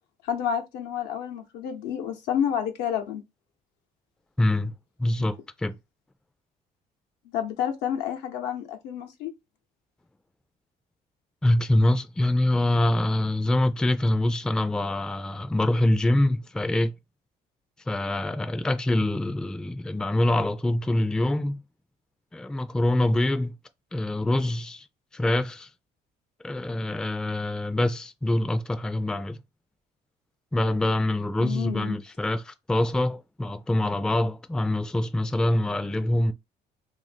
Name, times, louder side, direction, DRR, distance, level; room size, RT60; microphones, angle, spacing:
voice 1, 0.2-3.2 7.3-9.3 31.4-32.0, left 9 dB, 85° left, 0.8 m, -29 dB
voice 2, 4.4-4.7 5.0-5.7 11.4-16.9 17.9-21.6 22.3-23.5 23.9-24.9 25.1-25.7 26.4-29.4 30.5-36.3, left 1 dB, 5° left, 0.3 m, -25 dB
2.7 x 2.5 x 4.1 m
cardioid pair, 100°, 17 cm